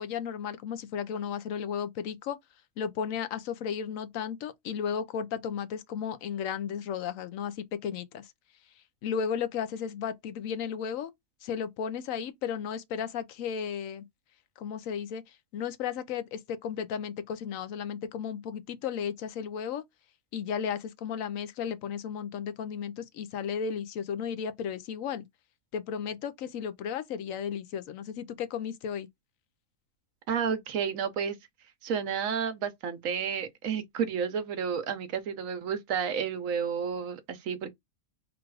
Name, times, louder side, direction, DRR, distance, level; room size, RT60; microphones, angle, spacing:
voice 1, 0.0-2.4 2.8-8.3 9.0-11.1 11.4-14.0 14.6-15.2 15.5-19.8 20.3-25.3 25.7-29.1, left 7 dB, 80° left, 1.0 m, -34 dB
voice 2, 30.3-31.4 31.8-37.7, right 7 dB, 80° right, 1.2 m, -31 dB
3.8 x 2.4 x 4.6 m
omnidirectional pair, 1.4 m